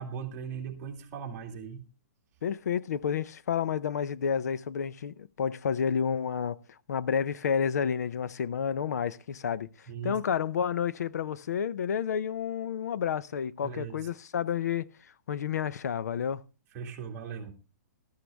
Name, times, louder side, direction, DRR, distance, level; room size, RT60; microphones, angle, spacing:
voice 1, 0.0-1.8 9.9-10.2 13.6-14.1 16.7-17.5, right 6 dB, 20° right, 2.1 m, -38 dB
voice 2, 2.4-6.6 6.9-9.7 10.0-14.9 15.3-16.4, left 7 dB, 60° left, 0.6 m, -30 dB
14.5 x 13.0 x 3.4 m
hypercardioid pair, 170°, 10 cm